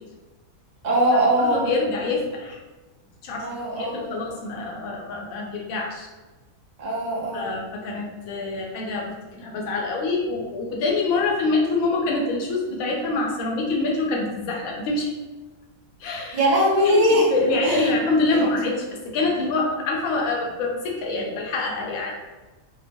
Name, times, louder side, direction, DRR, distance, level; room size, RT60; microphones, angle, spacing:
voice 1, 0.8-1.7 3.4-4.1 6.8-7.5 16.3-17.3 17.6-17.9 18.3-18.5, equal, 60° right, -5 dB, 0.4 m, -21 dB
voice 2, 1.4-2.6 3.2-6.1 7.3-15.1 16.0-16.4 16.8-17.0 17.3-22.3, left 3 dB, 75° left, -1 dB, 1.0 m, -25 dB
2.9 x 2.0 x 2.6 m, 1.2 s
omnidirectional pair, 1.5 m